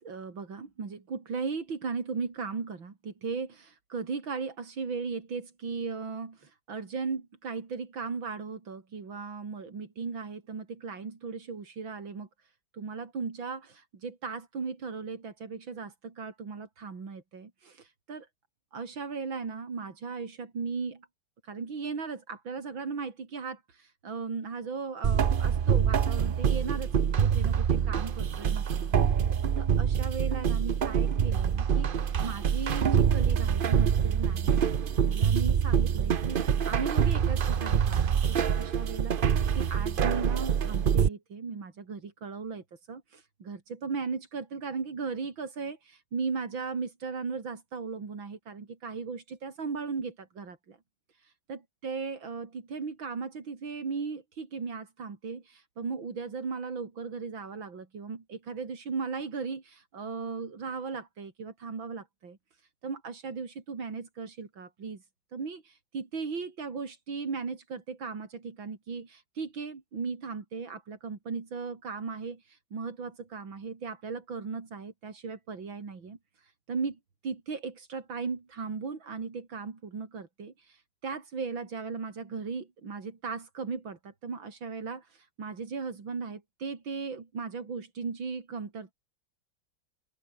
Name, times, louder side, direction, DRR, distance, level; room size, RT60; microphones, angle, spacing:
voice 1, 0.0-12.3 12.7-18.3 18.7-21.1 21.4-29.0 29.6-34.6 35.1-39.2 39.6-50.8 51.5-62.4 62.8-65.0 65.3-76.2 76.7-88.9, right 5 dB, 90° right, 4.0 m, -37 dB
sound 1, 25.0-41.1, right 7 dB, 70° right, 0.5 m, -25 dB
open air
omnidirectional pair, 2.1 m